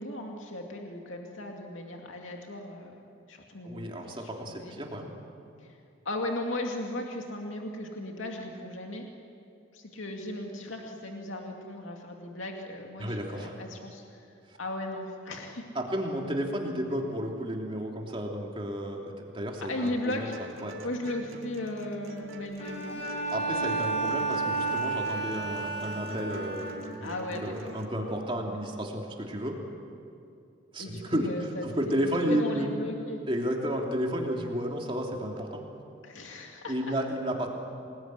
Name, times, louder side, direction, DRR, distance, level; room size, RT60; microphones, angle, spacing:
voice 1, 0.0-3.0 3.3-4.3 4.6-4.8 5.6-5.8 6.0-9.1 9.7-14.3 14.6-15.6 19.7-20.4 20.8-23.0 27.0-27.7 28.0-28.3 30.8-32.0 32.3-33.2 36.0-36.7, left 1 dB, 80° left, 1 dB, 2.4 m, -36 dB
voice 2, 3.6-5.1 13.0-13.5 14.5-14.6 15.7-20.3 20.6-20.8 23.3-27.1 27.4-29.6 30.7-32.7 33.3-35.6 36.6-37.5, equal, 25° right, 0 dB, 3.1 m, -32 dB
sound 1, 19.8-27.8, right 2 dB, 90° right, 2.5 m, -44 dB
Bowed string instrument, 22.6-27.2, right 3 dB, 35° left, 5.0 m, -32 dB
27.5 x 20.0 x 9.7 m, 2.5 s
head